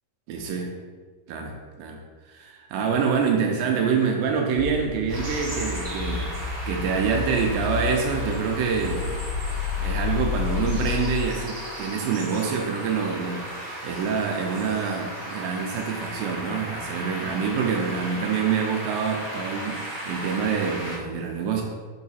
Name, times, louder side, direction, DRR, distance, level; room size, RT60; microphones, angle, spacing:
voice 1, 0.3-0.7 1.3-2.0 2.3-9.2 9.8-21.6, right 6 dB, 80° right, 1 dB, 2.2 m, -26 dB
sound 1, 4.6-11.2, left 5 dB, 80° left, 2.2 m, -30 dB
sound 2, 5.1-21.0, right 1 dB, 30° right, 1.3 m, -36 dB
6.1 x 4.8 x 4.1 m, 1.5 s
omnidirectional pair, 4.3 m